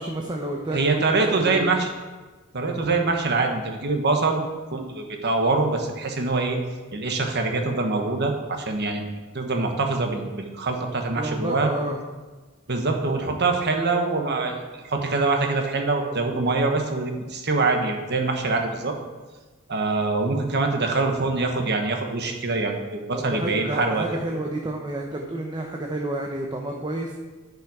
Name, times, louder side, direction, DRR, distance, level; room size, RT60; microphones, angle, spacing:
voice 1, 0.0-1.7 11.2-12.0 23.1-27.1, right 1 dB, 20° right, 1 dB, 0.7 m, -30 dB
voice 2, 0.7-1.9 2.5-4.4 4.7-6.6 6.9-9.0 9.3-11.7 12.7-18.9 19.7-24.0, right 3 dB, 55° right, 4 dB, 1.2 m, -24 dB
10.5 x 5.6 x 4.8 m, 1.3 s
head